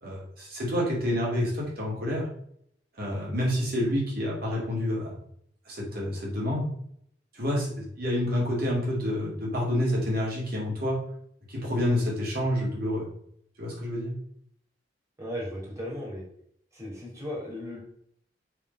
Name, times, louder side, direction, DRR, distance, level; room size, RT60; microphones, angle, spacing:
voice 1, 0.0-2.3 3.0-5.2 5.7-6.7 7.3-11.0 11.5-13.1 13.6-14.1, left 1 dB, 55° right, -4 dB, 2.6 m, -28 dB
voice 2, 15.2-16.2 16.7-17.8, left 1 dB, 15° right, -4 dB, 2.8 m, -36 dB
7.4 x 3.8 x 5.4 m, 0.68 s
head